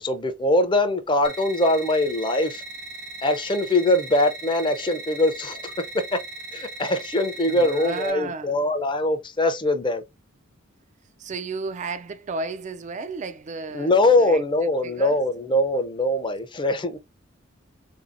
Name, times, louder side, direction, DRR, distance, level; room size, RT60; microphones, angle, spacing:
voice 1, 0.0-2.6 3.2-6.2 6.5-10.0 13.7-17.0, left 1 dB, 25° left, 0.5 m, -22 dB
sound 1, 1.2-8.1, right 1 dB, 55° right, 0.8 m, -38 dB
voice 2, 7.5-8.6 11.2-14.4 14.8-15.2, right 4 dB, 35° right, 0.3 m, -33 dB
3.9 x 2.7 x 2.5 m
head